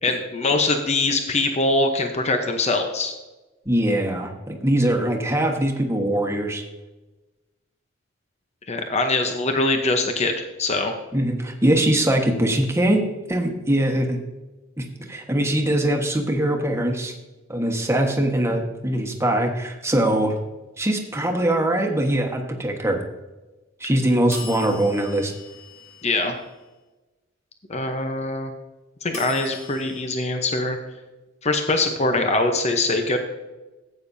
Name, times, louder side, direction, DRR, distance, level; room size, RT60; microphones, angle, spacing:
voice 1, 0.0-3.1 8.7-10.3 10.6-10.9 26.0-26.3 27.7-28.5 29.0-30.8 31.4-33.2, left 2 dB, 35° left, 5 dB, 0.9 m, -23 dB
voice 2, 3.6-6.6 11.1-13.0 13.3-14.2 14.8-17.1 17.5-20.3 20.8-23.0 23.8-25.3, right 1 dB, 15° right, 2 dB, 1.3 m, -22 dB
sound 1, 24.3-26.5 29.1-30.0, left 3 dB, 80° left, 2.1 m, -39 dB
14.5 x 8.6 x 2.7 m, 1.1 s
head